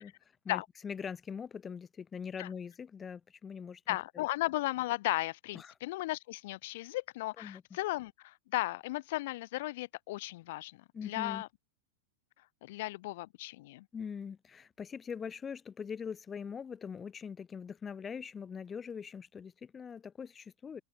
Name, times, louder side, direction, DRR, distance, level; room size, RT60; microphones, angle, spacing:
voice 1, 0.0-3.8 4.2-4.3 5.5-5.7 7.4-7.6 10.9-11.4 13.9-20.8, left 6 dB, 20° left, 0.9 m, -42 dB
voice 2, 3.9-11.5 12.6-13.9, left 18 dB, 50° left, 0.8 m, -35 dB
open air
figure-of-eight pair, 90°, 0 cm